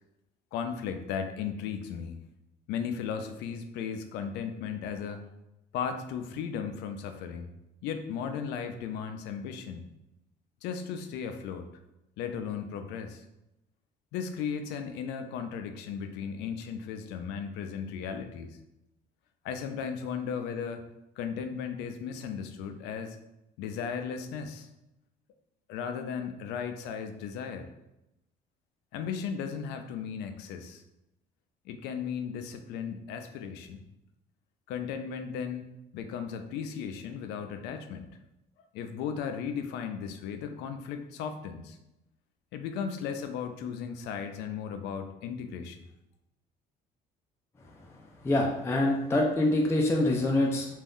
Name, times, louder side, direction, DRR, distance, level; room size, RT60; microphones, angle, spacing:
voice 1, 0.5-2.2 2.7-5.3 5.7-7.5 7.8-9.9 10.6-11.7 12.2-13.2 14.1-18.6 19.4-20.8 21.2-23.2 23.6-24.7 25.7-27.7 28.9-30.8 31.7-33.9 34.7-38.1 38.7-41.8 42.5-45.8, left 7 dB, 90° left, 7 dB, 0.4 m, -36 dB
voice 2, 48.2-50.7, left 1 dB, 15° left, -1 dB, 0.4 m, -25 dB
2.5 x 2.3 x 3.5 m, 0.90 s
cardioid pair, 110°, 17 cm